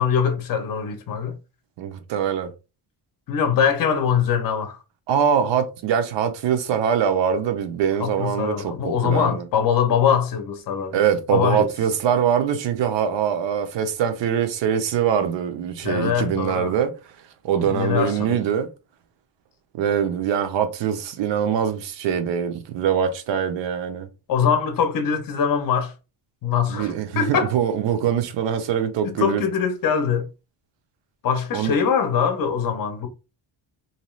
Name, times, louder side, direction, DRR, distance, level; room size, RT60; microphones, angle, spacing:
voice 1, 0.0-1.3 3.3-4.8 8.0-10.9 11.3-11.7 15.8-16.7 17.6-18.4 24.3-25.9 26.4-27.5 29.0-30.3 31.2-33.1, left 7 dB, 45° left, 0.6 m, -22 dB
voice 2, 1.8-2.5 5.1-9.4 10.9-17.0 17.4-18.7 19.7-24.1 26.7-29.4 31.5-31.7, right 8 dB, 70° right, 0.7 m, -23 dB
2.7 x 2.3 x 3.0 m
cardioid pair, 165°, 46 cm